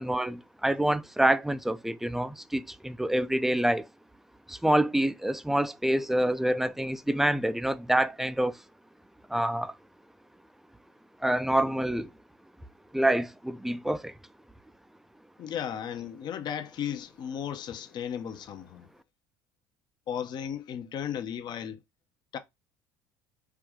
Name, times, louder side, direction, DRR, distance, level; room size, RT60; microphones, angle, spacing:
voice 1, 0.0-3.9 4.5-8.6 9.3-9.7 11.2-12.1 12.9-14.1, right 1 dB, 5° right, 0.4 m, -27 dB
voice 2, 15.4-18.9 20.1-21.8 22.3-22.4, left 9 dB, 50° left, 0.7 m, -35 dB
4.6 x 2.6 x 3.6 m
supercardioid pair, 85°, 9 cm